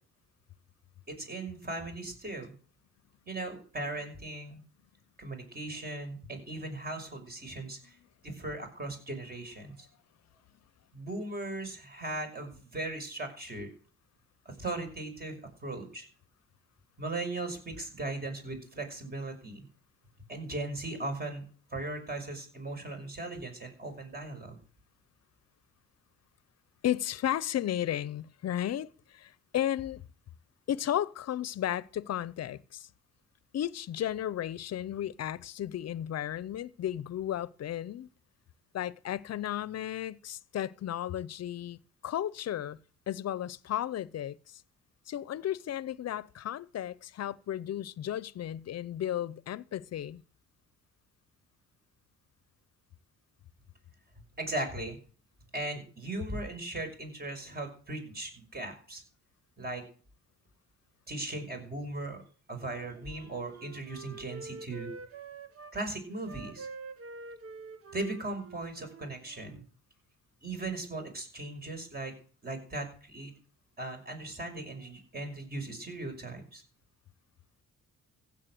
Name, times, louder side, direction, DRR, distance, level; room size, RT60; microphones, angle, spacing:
voice 1, 1.1-2.5 3.3-4.6 5.2-8.0 8.2-9.9 10.9-13.7 14.4-16.1 17.0-19.6 20.3-21.4 21.7-24.6 54.4-55.0 55.5-59.0 59.6-59.8 61.1-62.2 62.5-64.9 65.7-66.7 67.9-69.6 70.4-72.1 72.4-73.3 73.8-76.6, right 2 dB, 30° right, 5.9 m, -38 dB
voice 2, 26.8-30.0 30.7-32.9 33.5-38.1 38.7-42.8 43.1-44.6 45.1-50.2, left 11 dB, 55° left, 0.8 m, -34 dB
Wind instrument woodwind instrument, 62.6-65.8 66.2-69.6, right 4 dB, 50° right, 1.6 m, -47 dB
15.5 x 7.5 x 7.8 m
cardioid pair, 90°, 30 cm